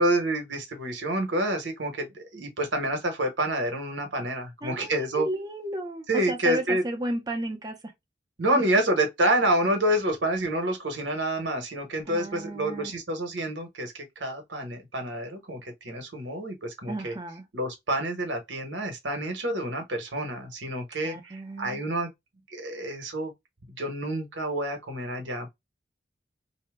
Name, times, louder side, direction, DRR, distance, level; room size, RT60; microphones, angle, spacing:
voice 1, 0.0-5.3 6.1-6.8 8.4-17.1 17.5-22.1 22.5-23.3 23.8-25.5, right 1 dB, 90° right, 1.1 m, -28 dB
voice 2, 4.6-7.8 8.5-8.6 12.1-12.9 16.8-17.4 21.0-21.8, right 1 dB, 20° right, 0.7 m, -33 dB
2.8 x 2.3 x 3.3 m
head